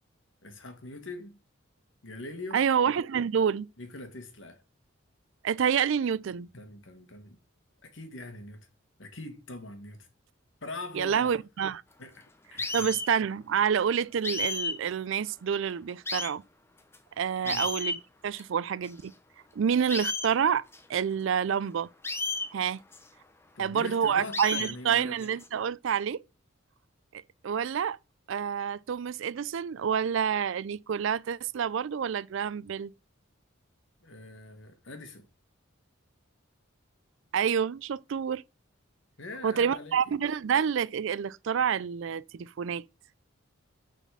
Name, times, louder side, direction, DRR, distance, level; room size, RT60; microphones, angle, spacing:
voice 1, 0.4-1.4 2.0-2.7 3.8-4.6 6.2-7.4 7.8-8.6 9.0-10.1 10.6-11.3 12.0-12.3 12.5-12.9 17.4-17.7 23.5-25.2 34.0-35.3 39.2-39.9, left 2 dB, 65° left, 1.6 m, -42 dB
voice 2, 2.5-3.7 5.4-6.5 10.9-11.8 12.7-16.4 17.2-18.0 18.2-19.1 19.6-20.6 20.9-21.9 22.5-22.8 23.6-26.2 27.1-28.0 28.3-32.9 37.3-38.4 39.4-42.8, right 7 dB, 65° right, 0.4 m, -28 dB
sound 1, 12.6-13.1 14.2-14.7 15.3-15.4 16.1-16.3 16.9-17.0 17.5-18.0 18.4-18.5 18.8-18.9 19.9-20.3 20.7-20.8 22.0-22.5 22.9-23.0 24.3-24.7 25.2-25.5, left 3 dB, 10° left, 0.6 m, -32 dB
6.6 x 4.2 x 6.3 m
head